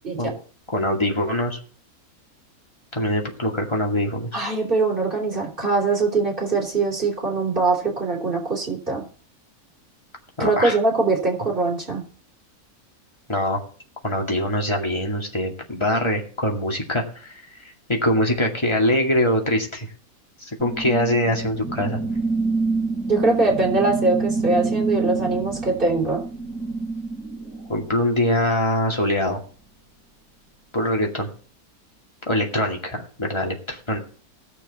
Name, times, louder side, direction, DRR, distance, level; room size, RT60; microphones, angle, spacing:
voice 1, 0.7-1.6 2.9-4.3 10.4-10.8 13.3-13.6 14.0-17.4 17.9-19.9 20.4-22.0 27.7-29.4 30.7-31.3 32.3-34.0, left 1 dB, 20° left, 1 dB, 2.4 m, -23 dB
voice 2, 4.3-9.0 10.4-12.0 23.1-26.2, right 3 dB, 35° right, -1 dB, 3.9 m, -22 dB
sound 1, 20.6-28.4, right 3 dB, 5° left, 7.4 m, -27 dB
18.0 x 6.9 x 4.2 m, 0.41 s
omnidirectional pair, 1.6 m